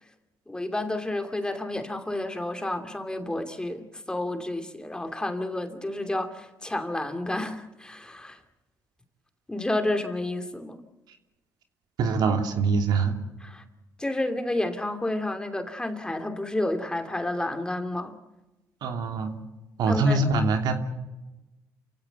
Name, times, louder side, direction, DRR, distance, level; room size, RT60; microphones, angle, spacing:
voice 1, 0.5-8.4 9.5-10.8 13.4-13.6 14.0-18.2 19.9-20.2, left 1 dB, 10° left, 2.8 m, -30 dB
voice 2, 12.0-13.2 18.8-19.4 19.8-20.8, right 3 dB, 70° right, 3.0 m, -24 dB
29.0 x 16.5 x 8.0 m
cardioid pair, 85°, 7 cm